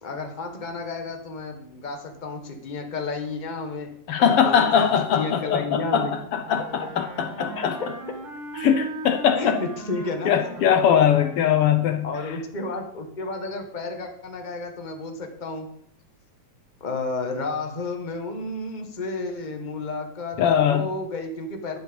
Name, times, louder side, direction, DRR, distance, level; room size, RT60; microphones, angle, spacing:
voice 1, 0.0-3.9 4.2-4.6 5.1-6.1 7.5-7.7 9.3-10.6 12.0-15.7 16.8-21.8, left 3 dB, 50° left, 4 dB, 0.5 m, -32 dB
voice 2, 4.1-7.7 8.6-9.6 10.2-12.3 20.4-20.9, left 8 dB, 75° left, 7 dB, 1.3 m, -21 dB
Wind instrument woodwind instrument, 6.4-11.8, right 3 dB, 75° right, 4.0 m, -39 dB
12.0 x 7.6 x 7.0 m, 0.68 s
omnidirectional pair, 3.6 m